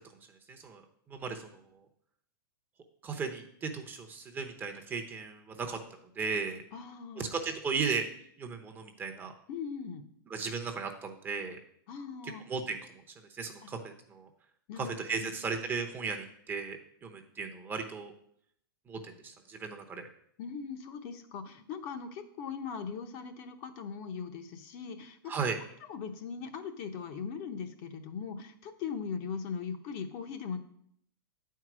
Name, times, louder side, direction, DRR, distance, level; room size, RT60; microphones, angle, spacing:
voice 1, 0.5-1.5 3.0-5.8 6.2-6.6 7.2-8.0 8.4-9.3 10.3-11.6 12.2-12.8 13.3-14.3 14.8-18.1 18.9-20.0 25.3-25.6, right 5 dB, 15° right, 4 dB, 0.8 m, -36 dB
voice 2, 6.7-7.3 9.5-10.0 11.9-12.4 13.6-13.7 14.7-15.4 20.4-25.5 25.9-30.6, left 6 dB, 40° left, 6 dB, 0.9 m, -40 dB
8.5 x 4.6 x 6.1 m, 0.68 s
hypercardioid pair, 145°, 12 cm